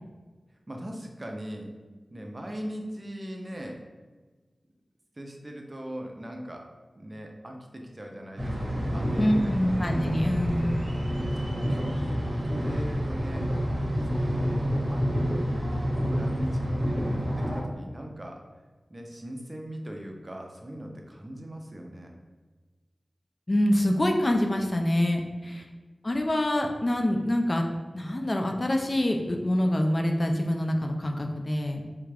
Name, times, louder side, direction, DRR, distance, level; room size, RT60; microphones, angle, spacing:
voice 1, 0.7-1.7 2.1-3.8 5.2-6.7 7.0-9.7 10.4-10.5 11.2-13.5 14.1-15.0 16.1-18.4 18.9-22.2, equal, 30° right, 1 dB, 0.5 m, -40 dB
sound 1, 8.4-17.6, equal, 50° right, 1.0 m, -28 dB
voice 2, 9.2-10.8 23.5-25.7 26.0-27.6 27.9-31.8, left 1 dB, 35° left, 3 dB, 0.4 m, -25 dB
3.4 x 2.3 x 3.3 m, 1.3 s
wide cardioid pair, 55°, 0 cm